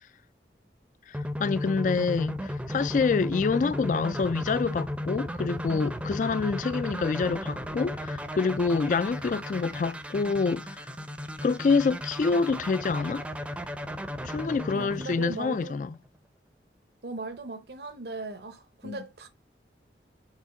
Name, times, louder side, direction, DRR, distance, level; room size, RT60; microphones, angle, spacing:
voice 1, 1.1-10.9 11.4-13.2 14.2-16.0 18.8-19.0, left 4 dB, 45° left, 0.3 m, -27 dB
sound 1, 1.1-16.1, left 1 dB, 5° right, 0.5 m, -35 dB
voice 2, 14.7-15.8 17.0-19.3, right 2 dB, 65° right, 0.8 m, -38 dB
4.9 x 3.6 x 5.6 m
head